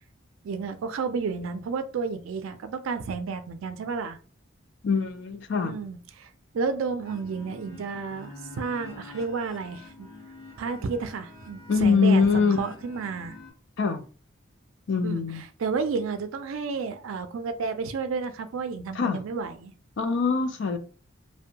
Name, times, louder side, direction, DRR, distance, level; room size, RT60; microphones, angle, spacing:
voice 1, 0.4-4.2 5.6-6.3 6.5-10.1 10.6-13.4 15.0-15.2 15.6-19.7, right 5 dB, 85° right, 0.4 m, -31 dB
voice 2, 4.8-5.7 11.7-12.6 13.8-14.0 14.9-15.4 18.9-19.2 20.0-20.8, left 5 dB, 60° left, 0.4 m, -23 dB
sound 1, 7.0-13.5, left 3 dB, 80° left, 0.9 m, -47 dB
2.5 x 2.1 x 2.7 m
head